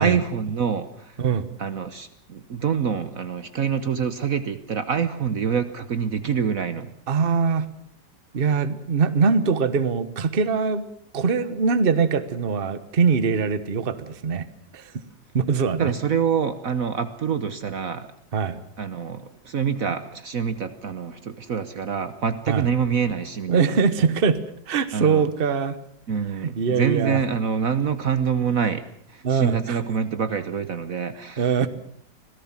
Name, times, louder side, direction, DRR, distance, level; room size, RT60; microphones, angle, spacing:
voice 1, 0.0-1.2 1.6-6.9 15.8-18.1 18.8-23.7 24.0-24.1 24.9-25.3 26.1-28.8 29.1-31.5, right 7 dB, 55° right, 11 dB, 1.4 m, -26 dB
voice 2, 7.1-7.7 8.3-10.8 11.1-14.5 14.7-14.9 15.3-15.9 18.3-18.6 22.5-22.7 23.5-24.4 24.7-25.8 26.4-27.2 29.2-29.8 31.4-31.7, right 5 dB, 35° right, 13 dB, 1.3 m, -22 dB
26.0 x 17.5 x 7.4 m, 0.69 s
omnidirectional pair, 1.9 m